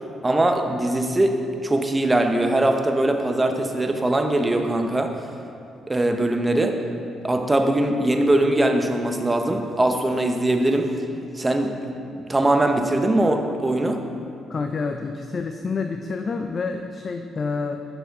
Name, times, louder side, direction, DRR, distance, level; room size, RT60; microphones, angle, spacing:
voice 1, 0.2-5.1 5.9-6.8 7.2-10.9 11.3-11.8 12.2-14.0, right 1 dB, 20° right, 5 dB, 0.6 m, -21 dB
voice 2, 14.5-17.8, left 4 dB, 45° left, 6 dB, 0.3 m, -28 dB
7.0 x 6.0 x 3.6 m, 2.6 s
cardioid pair, 90°, 0 cm